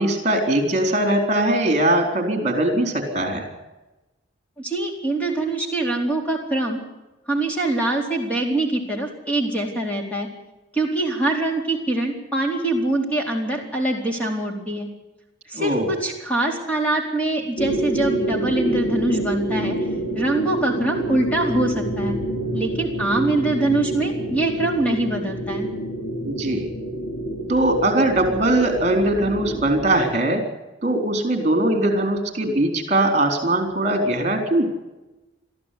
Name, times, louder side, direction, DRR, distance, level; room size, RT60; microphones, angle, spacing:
voice 1, 0.0-3.5 15.5-15.9 26.2-26.6 27.5-30.4 30.8-34.7, right 1 dB, 35° right, 4 dB, 4.1 m, -21 dB
voice 2, 4.6-6.8 7.3-10.3 10.7-14.9 15.5-19.8 20.1-22.2 22.5-25.7, right 2 dB, 5° left, 0 dB, 4.2 m, -24 dB
sound 1, 17.6-30.1, right 1 dB, 45° left, 3.2 m, -27 dB
22.0 x 14.0 x 8.5 m, 1.0 s
head